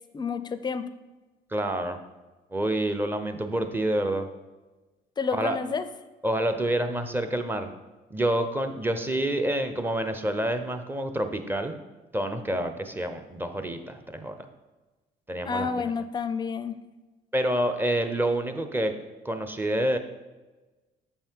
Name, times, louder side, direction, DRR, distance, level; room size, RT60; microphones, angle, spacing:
voice 1, 0.1-0.8 5.2-5.9 15.5-16.8, left 5 dB, 25° left, 11 dB, 0.5 m, -29 dB
voice 2, 1.5-2.0 2.5-4.3 5.3-5.6 6.2-7.7 8.1-11.7 12.1-14.4 15.3-15.9 17.3-18.9 19.2-20.0, right 1 dB, 10° right, 8 dB, 0.7 m, -28 dB
7.5 x 5.5 x 4.5 m, 1.2 s
cardioid pair, 110°, 17 cm